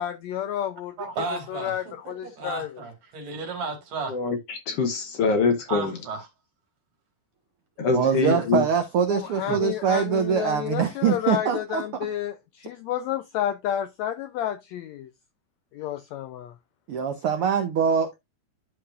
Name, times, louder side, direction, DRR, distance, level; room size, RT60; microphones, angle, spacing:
voice 1, 0.0-0.9 1.5-2.7 9.1-15.1 15.7-16.5, left 11 dB, 85° left, 1.6 m, -30 dB
voice 2, 1.0-4.1 5.7-6.3 8.1-8.5 9.4-9.6, right 4 dB, 60° right, 3.3 m, -34 dB
voice 3, 4.1-5.9 7.8-8.6, left 4 dB, 65° left, 1.5 m, -24 dB
voice 4, 7.9-11.8 16.9-18.1, right 7 dB, 85° right, 1.2 m, -23 dB
12.0 x 4.7 x 2.4 m
omnidirectional pair, 3.8 m